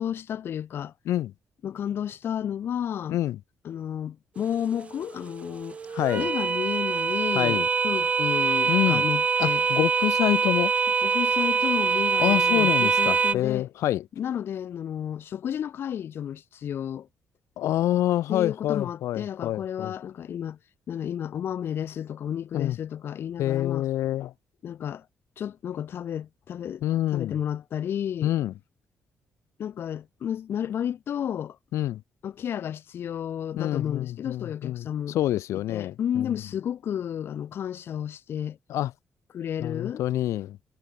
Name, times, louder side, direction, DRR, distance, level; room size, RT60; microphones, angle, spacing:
voice 1, 0.0-0.9 1.6-3.2 3.6-5.8 6.2-9.6 11.0-13.7 14.2-17.1 18.3-20.6 20.9-23.9 24.6-25.0 25.4-26.8 27.1-28.3 29.6-31.6 32.2-35.2 35.7-38.6 39.3-40.0, left 9 dB, 50° left, 1.1 m, -32 dB
sound 1, 4.4-13.3, right 5 dB, 25° right, 0.4 m, -24 dB
voice 2, 5.9-6.3 7.3-7.7 8.7-9.0 9.4-10.7 12.2-14.1 17.6-19.9 22.5-22.8 23.4-24.3 26.8-27.4 28.2-28.5 31.7-32.0 33.6-36.4 38.7-38.9 39.6-40.6, left 13 dB, 85° left, 0.6 m, -27 dB
cardioid pair, 165°, 5 cm